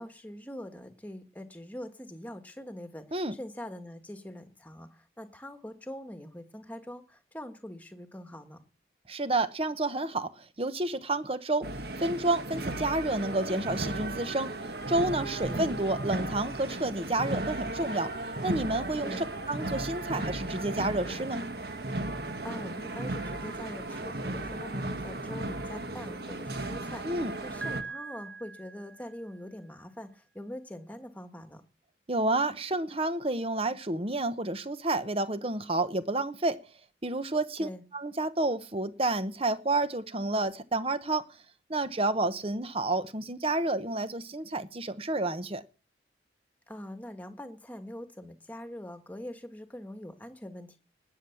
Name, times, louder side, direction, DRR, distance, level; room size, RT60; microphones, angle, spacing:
voice 1, 0.0-8.6 15.5-15.7 19.0-19.2 22.4-31.6 37.6-37.8 46.7-50.8, left 1 dB, 10° left, 1.5 m, -43 dB
voice 2, 9.1-11.7 12.0-14.5 14.9-18.1 18.4-21.5 27.0-27.3 32.1-36.6 37.0-41.3 41.7-45.6, right 2 dB, 30° right, 0.9 m, -30 dB
sound 1, 11.6-27.8, right 2 dB, 55° right, 1.6 m, -35 dB
Piano, 27.6-29.5, right 4 dB, 75° right, 1.2 m, -42 dB
19.0 x 7.6 x 7.1 m
head